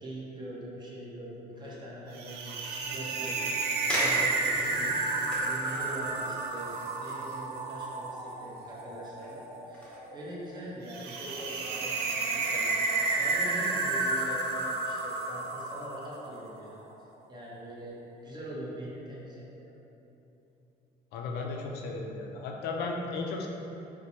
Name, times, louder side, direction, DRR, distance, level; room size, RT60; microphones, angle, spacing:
voice 1, 0.0-3.5 3.9-4.9 5.4-12.8 13.1-16.8 17.3-19.7, right 1 dB, 25° right, -6 dB, 0.8 m, -42 dB
sound 1, 1.5-1.9 2.5-2.6 3.3-3.4 3.9-8.9 9.1-10.6 10.9-11.3 11.8-13.3 13.7-13.9, equal, 5° left, 0.8 m, -40 dB
sound 2, 2.1-16.5, right 3 dB, 75° right, 0.4 m, -32 dB
voice 2, 4.6-5.1 21.1-23.5, left 3 dB, 75° left, 1 dB, 0.4 m, -35 dB
4.3 x 2.1 x 2.8 m, 3.0 s
cardioid pair, 110°, 17 cm